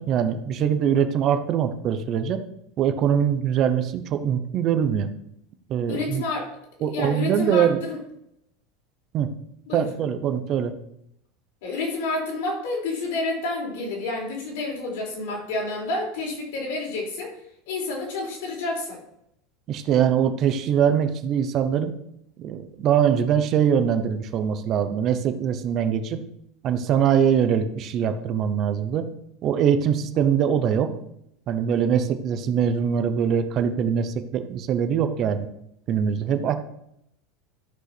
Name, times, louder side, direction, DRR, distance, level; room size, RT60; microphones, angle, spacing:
voice 1, 0.0-2.4 2.8-5.1 5.7-6.2 6.8-7.8 9.1-9.3 9.7-10.8 19.7-21.9 22.4-26.2 26.6-29.1 29.4-30.9 31.5-35.5 35.9-36.5, right 8 dB, 35° right, 8 dB, 0.8 m, -23 dB
voice 2, 5.9-6.5 6.9-8.0 9.7-9.9 11.6-17.3 17.7-19.0, left 2 dB, 75° left, -1 dB, 4.6 m, -29 dB
12.5 x 5.7 x 6.1 m, 0.78 s
supercardioid pair, 165°, 0 cm